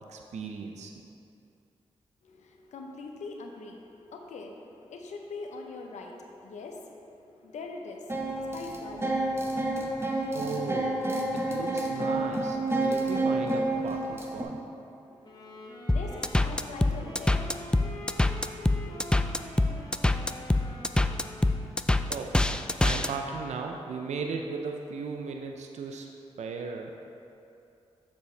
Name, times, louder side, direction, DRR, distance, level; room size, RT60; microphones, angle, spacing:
voice 1, 0.1-1.1 10.3-11.0 11.3-14.6 22.1-22.4 22.8-26.1 26.4-26.9, right 4 dB, 75° right, 3 dB, 0.5 m, -36 dB
voice 2, 2.2-9.7 15.0-18.7, left 3 dB, 80° left, 2 dB, 0.7 m, -43 dB
sound 1, 8.1-14.4, right 2 dB, 20° right, 1.1 m, -29 dB
sound 2, 15.2-21.8, left 1 dB, 35° left, 1.6 m, -45 dB
sound 3, 15.9-23.1, left 2 dB, 5° left, 0.3 m, -25 dB
7.0 x 6.7 x 3.2 m, 2.7 s
supercardioid pair, 45°, 12 cm